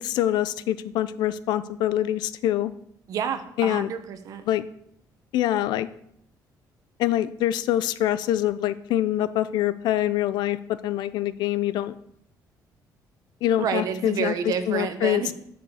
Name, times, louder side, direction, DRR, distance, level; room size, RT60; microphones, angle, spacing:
voice 1, 0.0-2.7 3.6-3.9 4.5-4.7 5.3-5.9 7.0-11.9 13.4-14.3 14.7-15.3, left 12 dB, 80° left, 15 dB, 0.5 m, -25 dB
voice 2, 3.1-4.4 13.6-15.3, right 7 dB, 55° right, 9 dB, 0.8 m, -29 dB
7.2 x 5.1 x 6.3 m, 0.71 s
cardioid pair, 175°, 7 cm